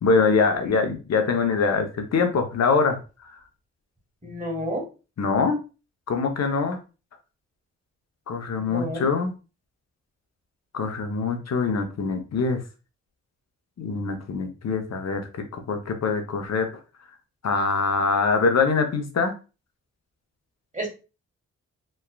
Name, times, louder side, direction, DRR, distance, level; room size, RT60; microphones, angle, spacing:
voice 1, 0.0-3.0 5.2-5.6 6.1-6.8 8.3-9.3 10.7-12.6 13.8-16.7 17.4-19.3, left 4 dB, 55° left, 5 dB, 0.8 m, -23 dB
voice 2, 4.2-4.8 8.6-9.1 20.7-20.9, equal, 25° right, 0 dB, 1.5 m, -31 dB
3.2 x 2.2 x 2.2 m, 0.32 s
supercardioid pair, 40°, 32 cm